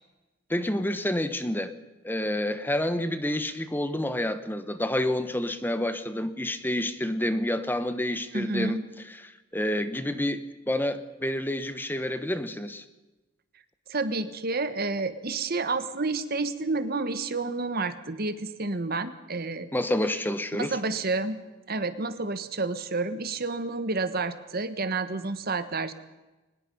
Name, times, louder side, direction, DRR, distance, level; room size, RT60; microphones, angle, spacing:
voice 1, 0.5-1.7 2.0-8.8 9.1-12.8 19.7-20.8, left 1 dB, 10° left, 10 dB, 1.2 m, -29 dB
voice 2, 8.3-8.8 13.9-19.7 20.6-21.4 21.7-25.9, right 3 dB, 50° right, 11 dB, 1.4 m, -30 dB
23.0 x 20.5 x 5.5 m, 1.1 s
head